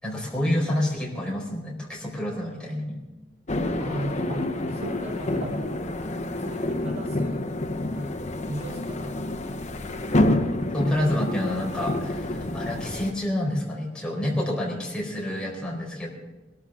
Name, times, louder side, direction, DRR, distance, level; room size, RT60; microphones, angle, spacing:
voice 1, 0.0-3.0 10.7-16.1, left 1 dB, 5° left, -4 dB, 4.3 m, -28 dB
sound 1, 3.5-13.1, left 1 dB, 35° left, 0.9 m, -28 dB
voice 2, 3.8-6.1 6.4-7.5 7.9-9.7, right 1 dB, 35° right, 2 dB, 1.2 m, -38 dB
sound 2, 4.3-8.8 9.6-9.7 10.1-10.8 13.1-13.8, right 1 dB, 90° right, 1.3 m, -43 dB
21.0 x 13.5 x 3.8 m, 1.2 s
head